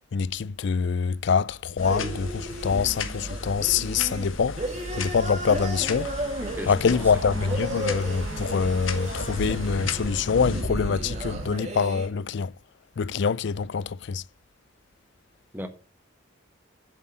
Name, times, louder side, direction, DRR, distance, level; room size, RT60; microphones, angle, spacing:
voice 1, 0.1-4.6 4.9-6.1 6.7-12.5 13.0-14.2, left 6 dB, 60° left, 0.4 m, -25 dB
sound 1, 1.8-10.6, left 3 dB, 85° left, 1.3 m, -36 dB
sound 2, 1.8-12.1, right 1 dB, 35° right, 2.3 m, -35 dB
Thunder / Bicycle, 5.8-11.5, right 1 dB, 70° right, 1.0 m, -36 dB
voice 2, 6.4-7.6 15.5-15.7, equal, 10° right, 1.4 m, -37 dB
8.2 x 7.4 x 8.7 m
head